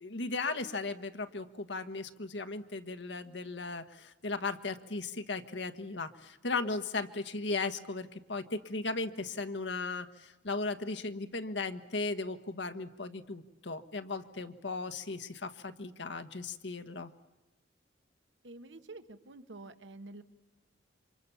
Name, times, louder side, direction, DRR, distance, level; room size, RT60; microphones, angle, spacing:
voice 1, 0.0-17.1, left 3 dB, 70° left, 8 dB, 1.4 m, -37 dB
voice 2, 18.4-20.2, right 2 dB, 80° right, 9 dB, 1.6 m, -48 dB
28.5 x 25.5 x 7.1 m, 1.0 s
head